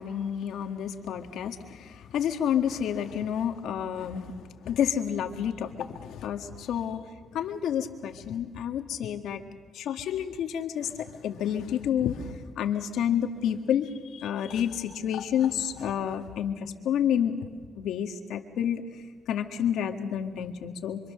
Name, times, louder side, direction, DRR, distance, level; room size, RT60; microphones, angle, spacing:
voice 1, 0.0-4.3 4.6-7.0 7.3-9.4 9.7-17.4 17.8-18.8 19.3-21.0, left 9 dB, 80° left, 5 dB, 1.8 m, -29 dB
26.5 x 25.0 x 6.6 m, 1.5 s
cardioid pair, 90°, 0 cm